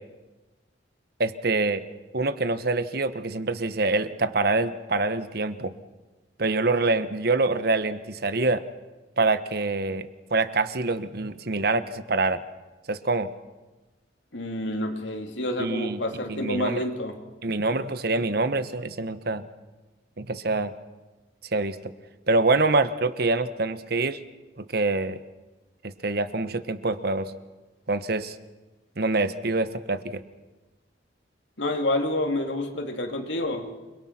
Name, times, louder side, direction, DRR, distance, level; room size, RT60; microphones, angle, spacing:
voice 1, 1.2-1.8 2.1-5.7 6.4-8.6 9.2-12.4 12.9-13.3 15.6-16.0 16.3-16.8 17.4-19.4 20.2-20.7 21.5-21.9 22.3-24.2 24.6-25.2 25.8-27.3 27.9-28.3 29.0-30.2, right 3 dB, 60° right, 12 dB, 1.1 m, -25 dB
voice 2, 14.3-17.2 31.6-33.7, left 1 dB, 85° left, 3 dB, 2.6 m, -28 dB
29.0 x 22.0 x 6.0 m, 1.2 s
head